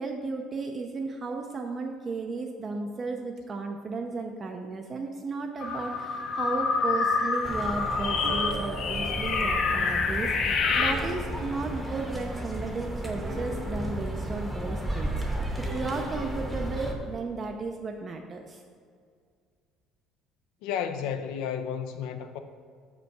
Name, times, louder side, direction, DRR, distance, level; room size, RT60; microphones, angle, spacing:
voice 1, 0.0-15.2 15.7-18.6, right 3 dB, 25° right, 0.4 m, -34 dB
sound 1, 5.6-10.9, left 4 dB, 45° left, 0.7 m, -27 dB
sound 2, 7.4-16.9, right 1 dB, 5° right, 0.8 m, -34 dB
sound 3, 8.0-17.1, right 1 dB, 50° right, 1.0 m, -43 dB
voice 2, 20.6-22.4, left 8 dB, 80° left, 0.5 m, -32 dB
6.6 x 5.1 x 4.6 m
cardioid pair, 145°, 0 cm